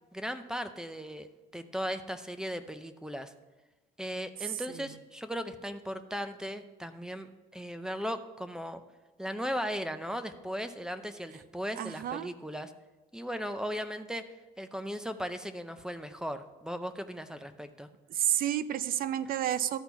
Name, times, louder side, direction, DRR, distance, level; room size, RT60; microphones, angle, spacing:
voice 1, 0.1-1.3 1.5-3.3 4.0-8.8 9.2-12.7 13.1-14.3 14.6-17.9, equal, 5° right, 9 dB, 0.6 m, -37 dB
voice 2, 4.4-4.9 11.8-12.3 18.1-19.8, right 11 dB, 60° right, 15 dB, 0.5 m, -31 dB
13.0 x 4.3 x 5.8 m, 1.2 s
cardioid pair, 110°, 17 cm